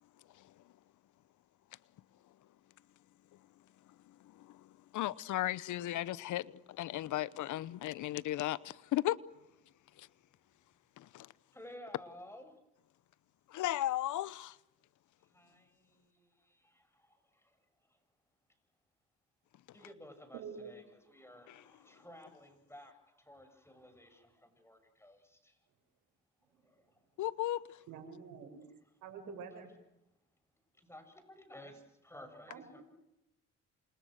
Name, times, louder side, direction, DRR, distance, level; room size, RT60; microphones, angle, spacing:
voice 1, 4.1-9.2 10.0-10.1 11.0-11.3 13.5-14.6 21.5-21.6 27.2-27.8, left 14 dB, 80° left, 0.9 m, -36 dB
voice 2, 11.5-12.6 15.2-18.0 19.7-25.6 26.6-27.0 30.7-32.8, left 1 dB, 10° left, 7.4 m, -55 dB
voice 3, 20.3-20.8 27.9-28.6 29.0-29.7 32.5-32.8, right 6 dB, 90° right, 6.3 m, -47 dB
29.0 x 26.5 x 6.6 m
cardioid pair, 90°, 30 cm